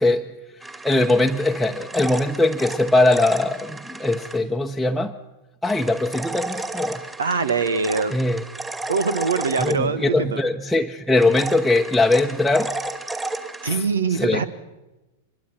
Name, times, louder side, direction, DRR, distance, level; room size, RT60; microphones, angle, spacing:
voice 1, 0.0-5.2 5.6-7.0 8.1-8.4 9.6-12.7 13.6-13.8 14.1-14.4, left 2 dB, ahead, -1 dB, 1.1 m, -21 dB
sound 1, 0.6-4.4 5.6-10.3 11.2-13.7, right 2 dB, 15° right, 2.4 m, -33 dB
voice 2, 7.2-8.2 8.9-10.4 13.6-14.5, right 5 dB, 80° right, 13 dB, 1.6 m, -23 dB
25.0 x 21.5 x 5.9 m, 1.1 s
hypercardioid pair, 100°, 0 cm